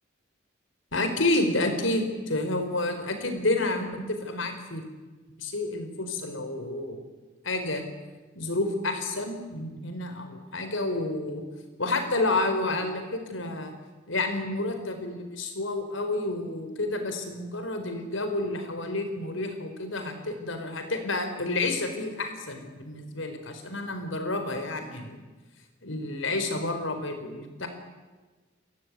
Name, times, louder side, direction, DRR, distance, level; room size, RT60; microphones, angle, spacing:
voice 1, 0.9-4.8 5.4-7.0 7.4-7.8 8.3-11.4 11.8-13.7 14.1-25.2 25.8-27.7, left 2 dB, 80° left, 7 dB, 4.4 m, -30 dB
29.5 x 15.5 x 9.6 m, 1.3 s
head